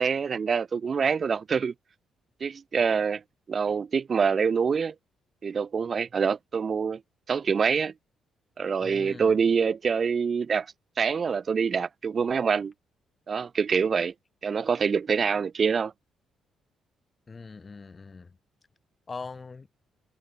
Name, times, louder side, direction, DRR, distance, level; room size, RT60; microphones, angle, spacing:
voice 1, 0.0-1.7 2.4-3.2 3.5-4.9 5.4-7.0 7.3-7.9 8.6-10.7 11.0-12.7 13.3-14.1 14.4-15.9, right 6 dB, 45° right, 1.9 m, -25 dB
voice 2, 8.8-9.4 17.3-18.4 19.1-19.7, left 4 dB, 30° left, 5.8 m, -41 dB
cardioid pair, 90°, 0 cm